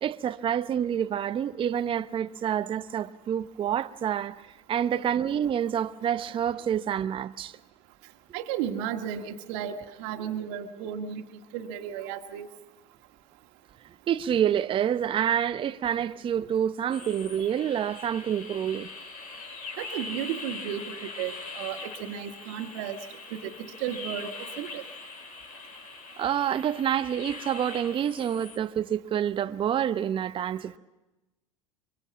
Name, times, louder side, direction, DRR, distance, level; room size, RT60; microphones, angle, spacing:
voice 1, 0.0-4.4 4.7-7.6 14.1-18.9 26.2-30.8, right 9 dB, 35° right, 0.8 m, -28 dB
voice 2, 8.3-11.2 11.5-12.5 19.8-20.8 21.2-23.0 23.3-23.5 23.8-24.3 24.6-24.8, right 9 dB, 65° right, 1.8 m, -34 dB
sound 1, 16.9-28.6, left 4 dB, 60° left, 4.5 m, -42 dB
24.0 x 23.5 x 7.3 m
hypercardioid pair, 85°, 16 cm